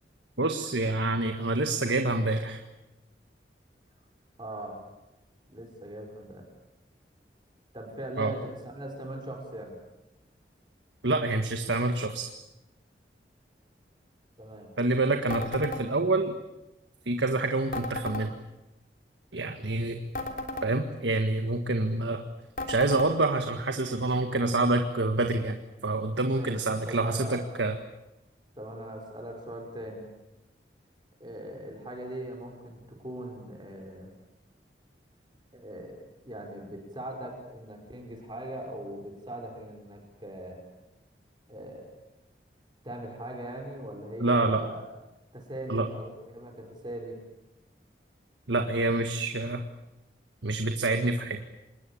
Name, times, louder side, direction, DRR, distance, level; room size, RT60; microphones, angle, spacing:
voice 1, 0.4-2.6 8.2-8.3 11.0-12.3 14.8-16.4 17.1-18.4 19.3-20.0 20.6-22.2 22.7-25.6 25.8-27.8 44.2-44.6 45.7-45.8 48.5-49.7 50.4-51.4, right 2 dB, 90° right, 6 dB, 1.7 m, -27 dB
voice 2, 4.4-4.8 5.5-6.5 7.7-9.7 14.4-14.7 26.3-26.6 26.8-27.5 28.6-30.1 31.2-34.1 35.5-36.0 36.2-40.6 41.5-41.9 42.8-44.9 45.3-47.2, right 1 dB, 25° right, 1 dB, 5.5 m, -40 dB
sound 1, 15.3-15.8 17.7-18.3 20.1-20.7 22.6-23.1, left 2 dB, 50° left, 3.2 m, -34 dB
26.5 x 21.0 x 8.7 m, 0.96 s
head